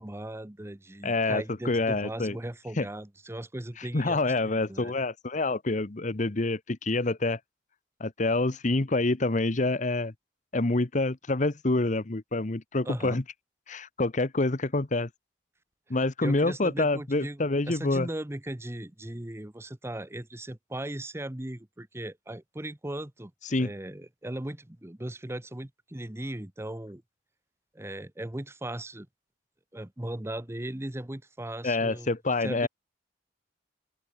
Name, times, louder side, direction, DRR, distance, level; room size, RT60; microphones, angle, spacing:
voice 1, 0.0-4.9 12.8-13.2 16.2-23.3 23.6-27.0 27.7-29.1 29.7-32.7, right 1 dB, 15° right, 0.9 m, -38 dB
voice 2, 1.0-2.4 2.8-2.9 3.9-7.4 8.0-10.1 10.5-13.2 13.7-15.1 15.9-18.1 23.5-23.7 31.6-32.7, left 2 dB, 45° left, 1.0 m, -27 dB
open air
head